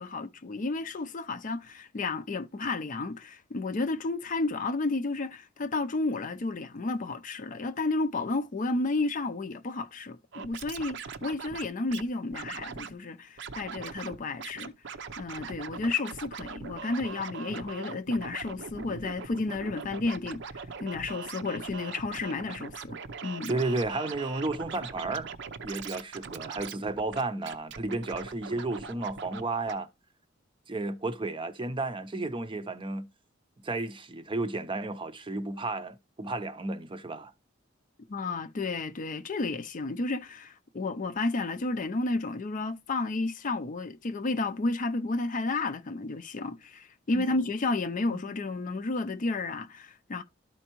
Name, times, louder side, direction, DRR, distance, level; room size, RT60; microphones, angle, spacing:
voice 1, 0.0-14.7 15.2-23.0 23.2-23.6 38.1-50.2, left 3 dB, 40° left, 0.5 m, -32 dB
Scratching (performance technique), 10.3-12.0 12.3-12.9 13.4-14.1 14.4-29.4 29.7-29.8, right 5 dB, 65° right, 0.6 m, -41 dB
voice 2, 23.5-25.3 25.6-29.9 30.7-33.1 33.6-37.3 47.1-47.3 48.4-48.5, right 2 dB, 25° right, 0.6 m, -33 dB
12.5 x 4.4 x 3.0 m
head